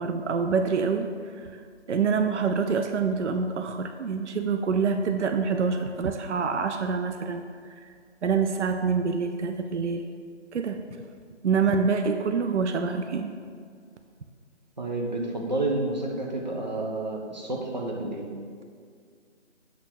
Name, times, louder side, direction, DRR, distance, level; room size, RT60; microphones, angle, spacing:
voice 1, 0.0-1.6 1.9-7.4 7.8-7.9 8.2-10.0 10.5-10.8 11.4-13.3, right 5 dB, 75° right, 6 dB, 0.6 m, -26 dB
voice 2, 14.8-18.3, right 2 dB, 40° right, -1 dB, 1.0 m, -30 dB
8.3 x 3.2 x 5.8 m, 2.1 s
figure-of-eight pair, 175°, 35 cm